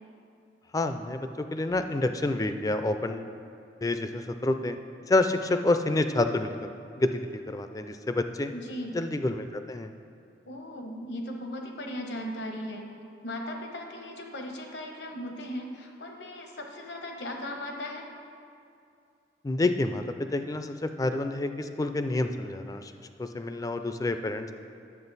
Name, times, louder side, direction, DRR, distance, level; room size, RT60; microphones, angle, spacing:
voice 1, 0.7-3.3 3.8-4.8 5.1-6.5 7.0-8.5 8.9-9.9 19.4-20.0 20.3-22.9 23.2-24.5, left 2 dB, 20° left, 8 dB, 0.4 m, -28 dB
voice 2, 8.5-9.0 10.5-12.9 13.2-18.1, left 1 dB, 80° left, 3 dB, 1.0 m, -37 dB
9.7 x 7.4 x 4.0 m, 2.5 s
head